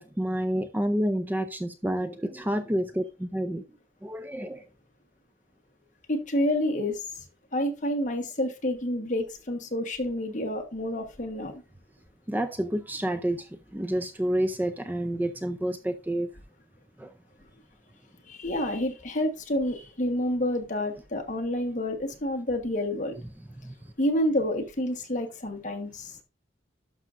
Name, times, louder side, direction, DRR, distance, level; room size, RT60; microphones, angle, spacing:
voice 1, 0.0-3.6 4.0-4.6 12.3-16.3 17.0-17.1 23.6-23.7, right 1 dB, 10° right, 0.4 m, -29 dB
voice 2, 6.1-7.0 7.5-11.5 18.3-23.1 24.0-26.2, left 1 dB, 40° left, 1.3 m, -28 dB
11.5 x 6.0 x 2.5 m
head